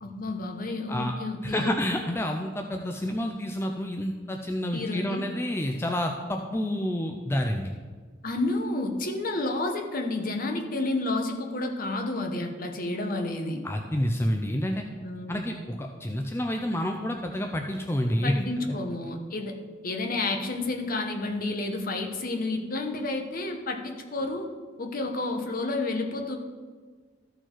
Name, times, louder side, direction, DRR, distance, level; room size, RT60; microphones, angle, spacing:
voice 1, 0.0-1.7 4.7-5.2 8.2-13.6 15.0-15.5 18.2-19.6 19.8-24.5 24.8-26.4, left 2 dB, 50° left, 4 dB, 1.0 m, -30 dB
voice 2, 1.4-7.7 13.6-14.8 15.3-18.8, left 1 dB, 15° left, 3 dB, 0.4 m, -29 dB
13.5 x 4.5 x 4.5 m, 1.5 s
head